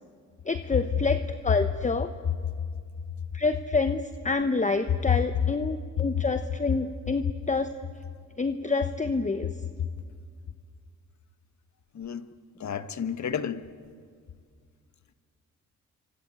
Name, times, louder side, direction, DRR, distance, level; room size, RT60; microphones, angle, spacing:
voice 1, 0.4-2.1 3.3-7.7 8.4-9.5, left 3 dB, 25° left, 1.0 m, -27 dB
voice 2, 11.9-12.3 12.6-13.6, left 8 dB, 60° left, 1.3 m, -32 dB
27.5 x 25.0 x 8.7 m
cardioid pair, 75°, 32 cm